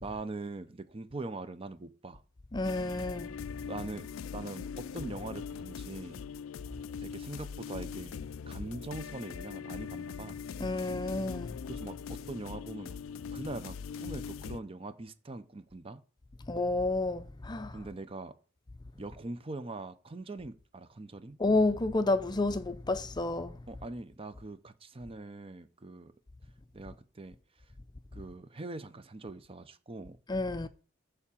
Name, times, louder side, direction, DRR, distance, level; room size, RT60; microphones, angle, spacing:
voice 1, 0.0-2.2 3.7-4.1 4.3-6.2 7.0-10.4 11.7-13.0 13.3-16.0 17.7-18.3 18.9-21.4 23.7-26.1 26.7-27.4 28.1-30.2, right 2 dB, 30° right, 0.7 m, -42 dB
voice 2, 2.5-3.3 10.6-11.6 16.5-17.8 21.4-23.6 30.3-30.7, left 2 dB, 20° left, 0.5 m, -30 dB
sound 1, 2.6-14.6, left 6 dB, 90° left, 0.4 m, -41 dB
7.1 x 4.9 x 7.1 m
head